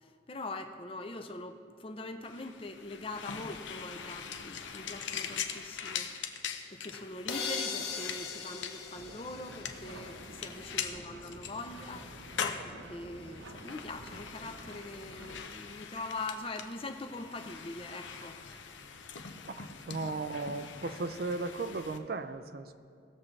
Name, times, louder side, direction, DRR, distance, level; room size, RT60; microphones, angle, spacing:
voice 1, 0.0-6.1 6.7-12.1 12.6-18.4 20.8-20.9, left 2 dB, 30° left, 7 dB, 0.5 m, -42 dB
sound 1, 2.2-22.0, left 7 dB, 90° left, 0.7 m, -42 dB
sound 2, 7.3-10.1, left 5 dB, 60° left, 1.0 m, -39 dB
sound 3, 8.9-15.5, right 2 dB, 85° right, 0.8 m, -50 dB
voice 2, 19.5-22.7, right 3 dB, 55° right, 10 dB, 0.5 m, -36 dB
18.0 x 7.3 x 3.3 m, 2.4 s
head